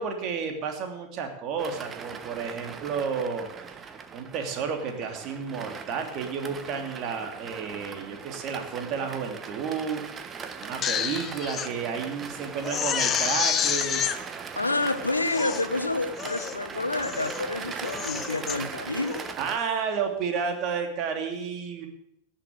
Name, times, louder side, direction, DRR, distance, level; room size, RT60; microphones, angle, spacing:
voice 1, 0.0-3.8 4.1-10.3 10.6-14.1 19.4-21.9, right 6 dB, 35° right, 4 dB, 2.9 m, -31 dB
sound 1, 1.6-19.6, right 6 dB, 20° right, 1.3 m, -40 dB
Crying sobbing, 10.6-11.7 12.1-12.2 12.6-14.2 14.8-14.9 15.3-15.7 16.2-16.6 17.0-17.4 17.8-18.6 19.0-19.3, left 8 dB, 25° left, 1.0 m, -29 dB
voice 2, 14.6-19.3, left 2 dB, 80° left, 10 dB, 1.1 m, -28 dB
17.0 x 7.2 x 8.3 m, 0.80 s
figure-of-eight pair, 90°, 0 cm